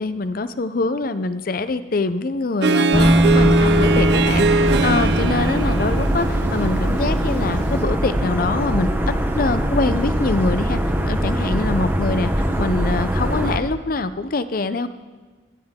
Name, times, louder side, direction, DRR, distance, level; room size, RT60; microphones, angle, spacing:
voice 1, 0.0-4.5 4.8-8.9 9.3-10.8 11.0-12.3 12.6-14.9, left 3 dB, 45° left, 12 dB, 0.5 m, -24 dB
Harp, 2.6-7.8, right 3 dB, 60° right, 0.5 m, -22 dB
Bass guitar, 2.9-6.9 8.0-8.1, right 1 dB, 5° left, 1.5 m, -21 dB
sound 1, 2.9-13.6, equal, 10° right, 0.8 m, -22 dB
17.5 x 11.5 x 3.6 m, 1.3 s
head